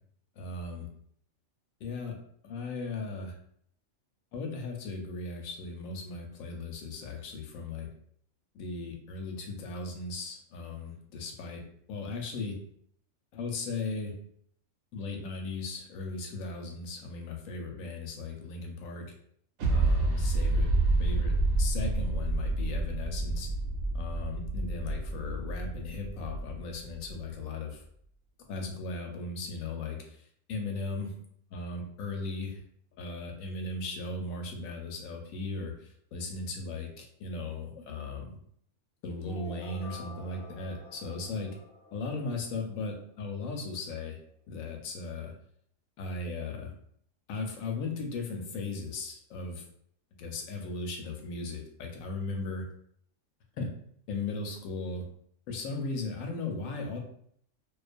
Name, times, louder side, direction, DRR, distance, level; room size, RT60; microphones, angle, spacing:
voice 1, 0.4-0.9 1.8-2.2 2.4-3.3 4.3-7.9 8.5-11.6 11.9-12.6 13.3-14.1 14.9-19.1 19.7-20.7 21.0-21.3 21.6-23.5 23.9-27.8 28.5-30.2 30.5-31.1 31.5-32.6 33.0-38.3 39.0-41.5 41.9-44.2 44.5-45.3 46.0-46.7 47.3-49.6 50.2-52.7 53.6-53.7 54.1-55.0 55.5-57.0, left 3 dB, 85° left, 2 dB, 1.0 m, -37 dB
sound 1, 19.6-27.1, right 2 dB, 80° right, 1.0 m, -29 dB
sound 2, 39.2-43.1, left 3 dB, 45° left, 0.6 m, -49 dB
2.4 x 2.2 x 2.5 m, 0.65 s
omnidirectional pair, 1.4 m